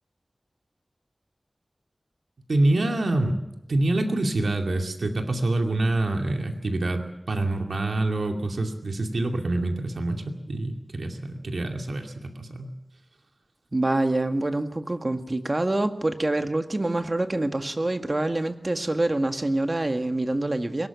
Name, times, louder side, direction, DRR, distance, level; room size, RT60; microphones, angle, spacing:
voice 1, 2.5-3.4 3.7-12.7, right 2 dB, 85° right, 3 dB, 2.4 m, -26 dB
voice 2, 13.7-20.9, right 2 dB, 40° right, 7 dB, 1.9 m, -26 dB
22.0 x 19.5 x 7.1 m, 0.89 s
wide cardioid pair, 45°, 0 cm